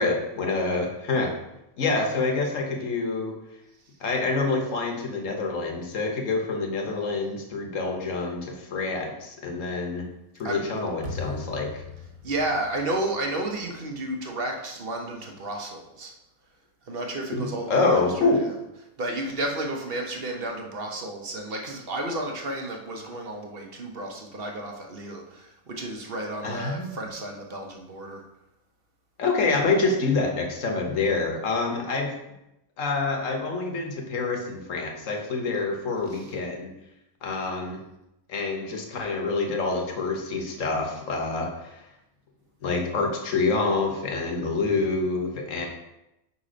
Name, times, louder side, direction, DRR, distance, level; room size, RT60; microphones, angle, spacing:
voice 1, 0.0-1.3 1.8-3.3 4.0-10.1 10.4-11.8 17.3-18.5 26.4-26.9 29.2-32.1 32.8-36.7 37.2-37.8 38.3-41.8 42.6-45.7, left 3 dB, 60° left, 2 dB, 1.3 m, -27 dB
sound 1, 11.0-14.1, left 4 dB, 65° right, 1.5 m, -40 dB
voice 2, 12.2-16.1 16.9-18.0 18.3-18.4 19.0-28.2 36.1-36.3 44.6-44.9, right 1 dB, 45° right, 2 dB, 0.9 m, -32 dB
5.4 x 4.2 x 5.0 m, 0.89 s
omnidirectional pair, 1.5 m